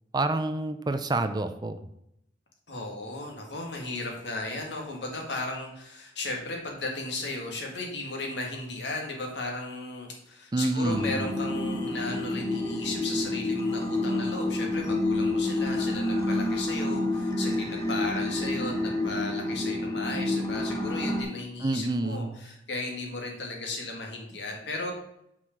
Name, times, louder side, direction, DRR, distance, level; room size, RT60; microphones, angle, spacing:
voice 1, 0.1-1.8 10.5-11.2 21.6-22.3, right 2 dB, 25° right, 9 dB, 0.5 m, -28 dB
voice 2, 2.7-24.9, left 2 dB, 75° left, 1 dB, 1.8 m, -35 dB
sound 1, 10.8-21.2, left 2 dB, 20° left, 1.1 m, -29 dB
6.1 x 4.8 x 5.8 m, 0.77 s
head